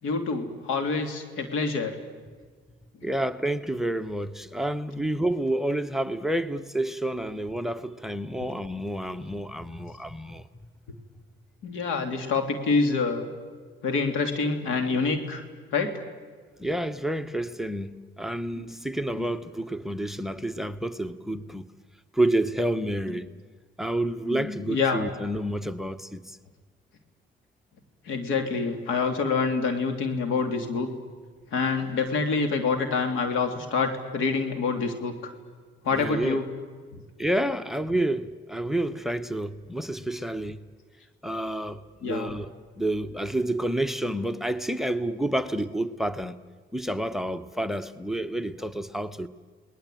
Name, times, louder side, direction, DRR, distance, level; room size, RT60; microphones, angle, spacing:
voice 1, 0.0-2.0 11.6-13.3 13.8-15.4 15.7-16.0 18.6-18.7 19.1-19.3 24.3-25.1 28.1-30.9 31.5-35.1 35.8-36.4 36.9-37.0 42.0-42.3, left 4 dB, 90° left, 2.8 m, -26 dB
voice 2, 3.0-10.4 16.6-21.7 22.1-23.3 23.8-26.4 35.9-36.4 37.2-40.7 41.2-42.5 42.8-46.4 46.7-49.3, right 1 dB, ahead, 0.9 m, -29 dB
29.5 x 19.5 x 9.1 m
cardioid pair, 90°, 20 cm